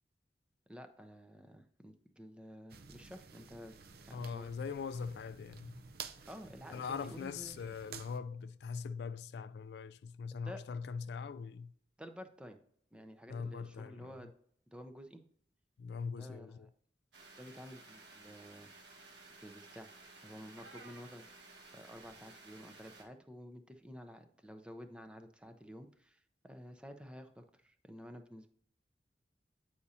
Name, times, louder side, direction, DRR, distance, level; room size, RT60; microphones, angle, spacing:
voice 1, 0.7-3.7 4.0-4.5 6.3-7.6 10.4-10.6 12.0-12.6 12.9-14.3 14.7-15.2 16.2-16.7 17.4-18.7 19.4-19.9 20.2-28.5, equal, 5° right, 0.5 m, -51 dB
sound 1, 2.7-8.2, right 6 dB, 60° right, 0.5 m, -52 dB
voice 2, 4.1-5.8 6.7-11.7 13.3-14.2 15.8-16.7, left 5 dB, 65° left, 0.3 m, -41 dB
sound 2, 17.1-23.0, right 3 dB, 90° right, 1.6 m, -56 dB
8.4 x 4.9 x 2.8 m
head